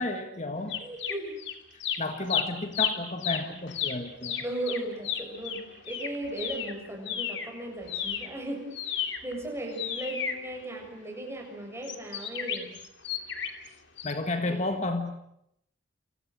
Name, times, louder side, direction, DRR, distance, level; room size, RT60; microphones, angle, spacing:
voice 1, 0.0-0.8 2.0-4.4 14.0-15.1, left 2 dB, 35° left, 7 dB, 1.6 m, -32 dB
sound 1, 0.7-1.5 1.8-7.5 7.8-11.1 11.8-13.7 14.0-14.1, left 8 dB, 65° left, 2.9 m, -33 dB
voice 2, 0.8-1.4 4.4-12.7 14.5-14.7, right 1 dB, 15° right, 1 dB, 7.7 m, -37 dB
29.0 x 27.0 x 6.5 m, 0.76 s
head